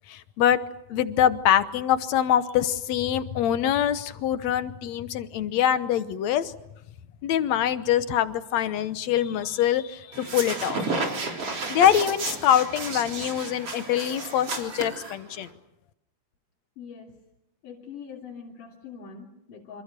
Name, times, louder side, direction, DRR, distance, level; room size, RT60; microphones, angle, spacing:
voice 1, 0.1-0.6 0.9-6.5 7.2-10.9 11.7-15.5, left 10 dB, 65° left, 12 dB, 2.2 m, -24 dB
sound 1, 10.1-15.5, right 3 dB, 45° right, 4.6 m, -32 dB
sound 2, 11.6-15.2, equal, 5° right, 3.7 m, -49 dB
voice 2, 16.8-17.2 17.6-19.8, left 6 dB, 85° left, -2 dB, 4.7 m, -43 dB
27.5 x 26.5 x 6.8 m, 0.86 s
omnidirectional pair, 3.6 m